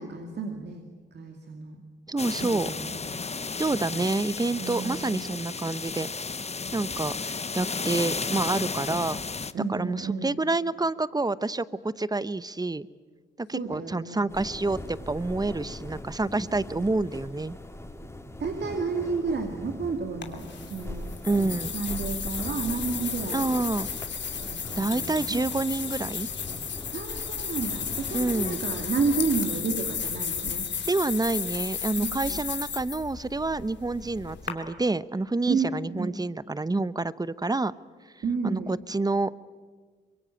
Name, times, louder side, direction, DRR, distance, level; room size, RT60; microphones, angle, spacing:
voice 1, 0.0-1.8 2.4-3.0 4.6-5.3 9.5-10.3 13.5-14.2 16.7-16.8 18.4-21.1 21.4-21.5 21.7-23.5 24.3-25.4 26.9-30.7 32.0-32.4 35.5-36.1 38.2-38.7, right 4 dB, 60° right, 4 dB, 2.4 m, -31 dB
voice 2, 2.1-2.7 3.6-6.1 6.7-9.2 9.7-12.9 13.4-17.6 21.2-21.7 23.3-23.9 24.8-26.3 28.1-28.6 30.9-37.7 38.4-39.3, right 2 dB, 20° right, 17 dB, 0.9 m, -28 dB
sound 1, 2.2-9.5, left 4 dB, 35° left, 1.0 m, -33 dB
sound 2, 14.3-29.4, left 1 dB, 15° left, 3.8 m, -41 dB
sound 3, 20.2-34.5, left 7 dB, 65° left, 2.9 m, -34 dB
25.0 x 22.0 x 8.9 m, 1.5 s
cardioid pair, 55°, 19 cm